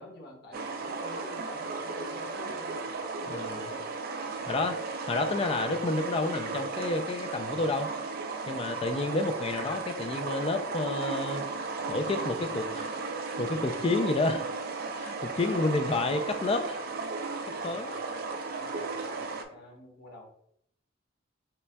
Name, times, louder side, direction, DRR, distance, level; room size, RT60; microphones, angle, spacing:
voice 1, 0.0-2.9 3.2-3.8 4.4-4.7 17.6-18.0 18.6-20.3, equal, 60° left, -1 dB, 1.2 m, -48 dB
sound 1, 0.5-19.4, right 4 dB, 50° right, 0.4 m, -35 dB
voice 2, 4.5-7.9 8.5-11.5 11.9-12.9 13.2-14.4 15.0-16.8 17.4-18.0, left 2 dB, 30° left, 7 dB, 0.4 m, -30 dB
6.5 x 2.3 x 2.2 m, 0.69 s
head